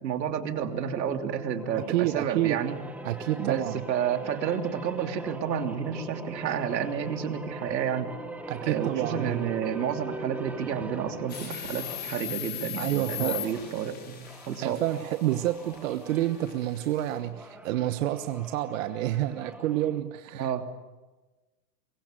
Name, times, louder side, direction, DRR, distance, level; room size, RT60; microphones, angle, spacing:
voice 1, 0.0-2.8 3.4-8.1 8.7-14.8 20.3-20.7, right 8 dB, 80° right, 6 dB, 3.1 m, -30 dB
sound 1, 0.5-12.2 12.9-20.0, right 2 dB, 5° right, 1.7 m, -42 dB
voice 2, 1.9-2.6 3.0-3.8 8.5-9.5 12.8-13.4 14.6-20.5, right 14 dB, 50° right, 10 dB, 1.3 m, -29 dB
sound 2, 11.3-17.2, left 11 dB, 20° left, 4.7 m, -39 dB
23.5 x 23.5 x 9.1 m, 1.2 s
supercardioid pair, 155°, 49 cm